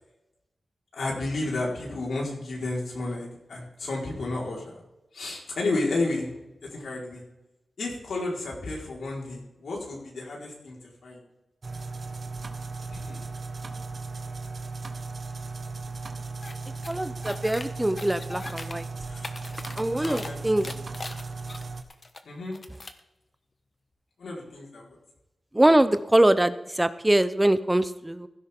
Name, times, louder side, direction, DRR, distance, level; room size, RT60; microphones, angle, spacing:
voice 1, 0.9-4.8 5.1-6.3 6.7-7.2 7.8-10.8 11.0-11.2 12.9-13.2 19.1-19.3 19.9-20.4 20.6-20.9 22.2-22.5 24.2-25.0, left 2 dB, 85° left, -3 dB, 4.7 m, -32 dB
sound 1, 11.6-21.8, right 3 dB, 60° right, 1.5 m, -36 dB
sound 2, 16.4-16.5 16.8-17.6 18.0-18.7 19.1-20.3 20.6-22.2 22.5-23.0, left 3 dB, 45° left, 1.3 m, -40 dB
voice 2, 16.9-18.8 19.8-20.6 25.5-28.3, right 1 dB, 15° right, 12 dB, 0.7 m, -23 dB
16.0 x 12.5 x 3.8 m, 0.94 s
cardioid pair, 65°, 0 cm